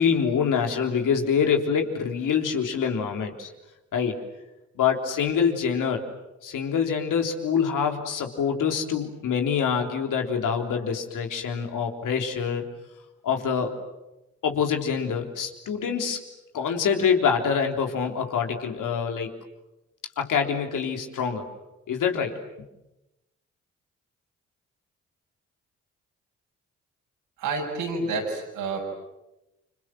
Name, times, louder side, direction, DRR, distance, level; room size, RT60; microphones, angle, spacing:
voice 1, 0.0-3.5 3.9-4.2 4.8-6.0 6.4-12.6 13.2-13.7 14.4-16.2 16.5-19.3 20.2-21.5 21.9-22.4, left 6 dB, 65° left, 4 dB, 3.6 m, -25 dB
voice 2, 27.4-28.8, right 3 dB, 80° right, -1 dB, 6.9 m, -29 dB
29.5 x 26.5 x 7.7 m, 0.96 s
hypercardioid pair, 40°, 34 cm